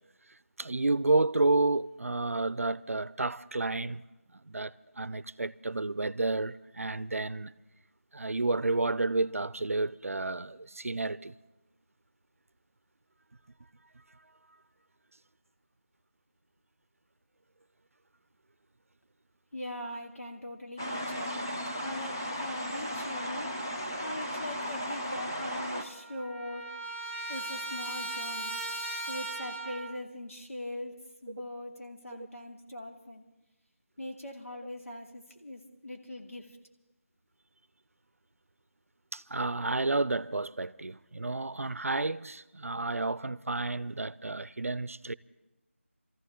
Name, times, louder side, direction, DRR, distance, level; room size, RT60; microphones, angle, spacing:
voice 1, 0.6-4.0 4.5-7.5 8.1-11.3 39.1-45.1, right 2 dB, 85° right, 0.5 m, -30 dB
voice 2, 19.5-23.5 24.0-26.7 27.3-28.6 29.1-33.2 34.0-36.6, left 1 dB, 85° left, 2.6 m, -41 dB
sound 1, 20.8-25.8, equal, 15° left, 0.5 m, -35 dB
Trumpet, 25.6-30.0, right 2 dB, 55° left, 5.2 m, -38 dB
26.0 x 14.0 x 3.7 m
figure-of-eight pair, 180°, 7 cm